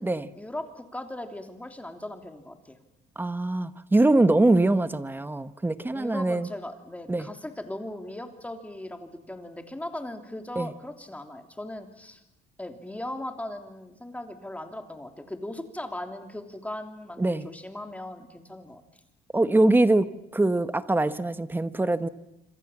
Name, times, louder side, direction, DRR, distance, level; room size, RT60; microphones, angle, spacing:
voice 1, 0.3-2.8 5.9-12.2 12.6-18.8, left 1 dB, 10° left, 6 dB, 3.3 m, -38 dB
voice 2, 3.2-6.5 7.1-7.3 10.6-10.7 17.2-17.5 19.3-22.1, right 2 dB, 10° right, 13 dB, 1.2 m, -23 dB
26.5 x 26.5 x 7.4 m, 0.86 s
cardioid pair, 110°, 17 cm